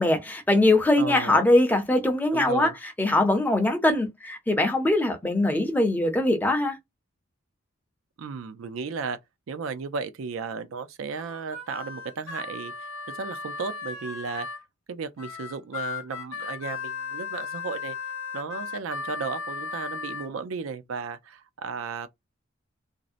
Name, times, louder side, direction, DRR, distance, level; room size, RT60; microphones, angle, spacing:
voice 1, 0.0-2.7 3.0-6.8, left 1 dB, 10° left, 0.5 m, -22 dB
voice 2, 1.0-1.5 2.3-2.7 8.2-9.2 9.5-12.7 13.1-14.5 14.9-18.0 18.3-22.1, right 5 dB, 85° right, 0.4 m, -34 dB
Harmonica, 11.1-14.6 15.2-20.3, left 5 dB, 80° left, 0.7 m, -36 dB
2.6 x 2.0 x 2.4 m
head